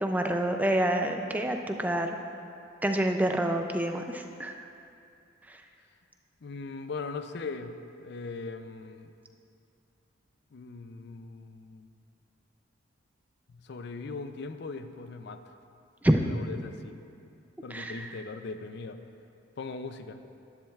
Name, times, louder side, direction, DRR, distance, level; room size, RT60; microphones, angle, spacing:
voice 1, 0.0-2.2 2.8-4.5 16.0-16.2 17.7-18.1, right 1 dB, 10° right, 4 dB, 0.4 m, -27 dB
voice 2, 6.4-7.7 8.0-9.1 10.5-11.9 13.5-15.5 16.2-17.0 17.6-19.0 19.6-20.2, left 4 dB, 55° left, 9 dB, 0.4 m, -39 dB
11.5 x 10.5 x 2.4 m, 2.6 s
head